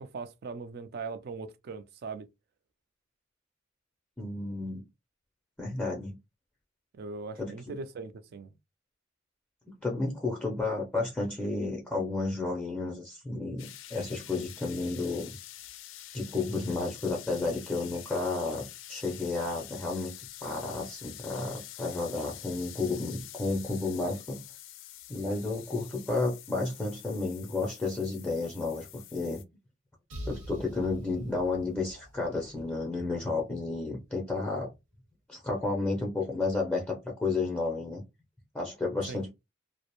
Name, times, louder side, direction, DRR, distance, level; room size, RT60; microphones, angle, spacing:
voice 1, 0.0-2.3 6.9-8.5 39.1-39.2, right 4 dB, 55° right, 0.4 m, -40 dB
voice 2, 4.2-4.8 5.6-6.2 7.4-7.6 9.8-15.4 16.1-20.1 20.4-24.4 25.1-29.4 30.3-34.7 35.3-38.0 38.5-39.3, left 3 dB, 10° left, 0.5 m, -32 dB
sound 1, 13.6-29.4, left 13 dB, 75° left, 0.3 m, -47 dB
sound 2, 30.1-33.8, equal, 80° right, 1.0 m, -45 dB
2.4 x 2.0 x 2.9 m
head